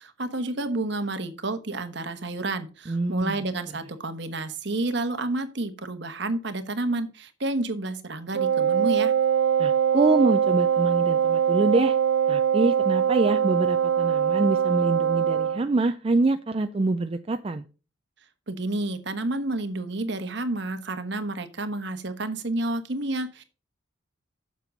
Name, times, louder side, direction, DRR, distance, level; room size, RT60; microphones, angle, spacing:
voice 1, 0.0-9.1 18.5-23.4, right 2 dB, 55° right, 1.2 m, -30 dB
voice 2, 2.9-3.4 9.6-12.0 12.3-17.6, right 2 dB, 30° right, 0.4 m, -25 dB
Wind instrument woodwind instrument, 8.3-15.6, right 8 dB, 85° right, 1.0 m, -22 dB
7.4 x 6.8 x 5.2 m
head